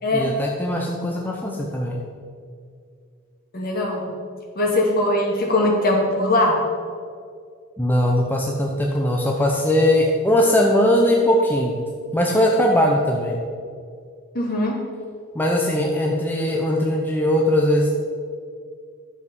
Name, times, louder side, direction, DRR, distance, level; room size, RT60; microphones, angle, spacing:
voice 1, 0.1-2.0 7.8-11.8 12.1-13.4 15.3-18.0, left 1 dB, 10° left, -1 dB, 0.8 m, -20 dB
voice 2, 3.5-4.1 4.6-6.6 14.3-14.8, left 1 dB, 45° left, -1 dB, 2.2 m, -20 dB
11.0 x 7.3 x 5.4 m, 2.2 s
head